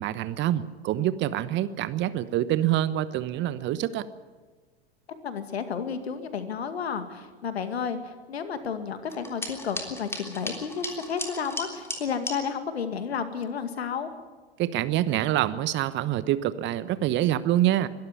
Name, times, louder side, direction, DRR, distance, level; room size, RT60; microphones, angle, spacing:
voice 1, 0.0-4.0 14.6-17.9, right 13 dB, 35° right, 15 dB, 1.0 m, -26 dB
voice 2, 5.1-14.1, left 6 dB, 75° left, 9 dB, 2.2 m, -32 dB
sound 1, 9.1-12.4, left 1 dB, 10° left, 3.4 m, -36 dB
22.5 x 13.0 x 9.9 m, 1.4 s
figure-of-eight pair, 90°, 32 cm